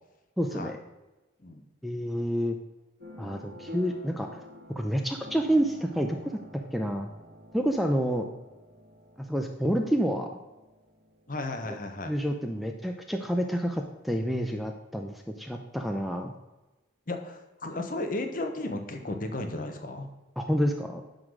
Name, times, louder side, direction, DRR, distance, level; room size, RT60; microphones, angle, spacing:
voice 1, 0.4-0.8 1.8-2.6 3.2-4.3 4.8-6.4 6.7-7.1 7.5-8.3 9.3-10.4 11.6-11.8 12.1-16.3 20.4-21.0, equal, ahead, 4 dB, 0.5 m, -28 dB
sound 1, 3.0-13.8, left 1 dB, 50° right, 1.6 m, -50 dB
voice 2, 11.3-12.1 17.1-20.1, left 2 dB, 45° left, 5 dB, 1.1 m, -34 dB
10.5 x 4.0 x 6.4 m, 1.1 s
head